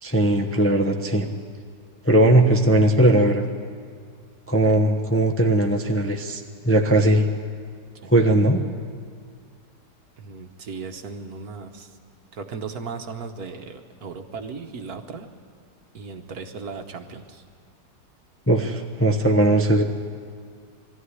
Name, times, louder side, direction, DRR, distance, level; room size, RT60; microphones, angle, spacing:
voice 1, 0.0-1.3 2.0-3.4 4.5-7.3 8.0-8.6 18.5-19.8, right 1 dB, 10° left, 1 dB, 0.7 m, -19 dB
voice 2, 10.2-12.0 12.3-15.3 15.9-17.4, right 5 dB, 60° right, 5 dB, 1.6 m, -36 dB
20.5 x 14.0 x 9.8 m, 2.1 s
omnidirectional pair, 1.9 m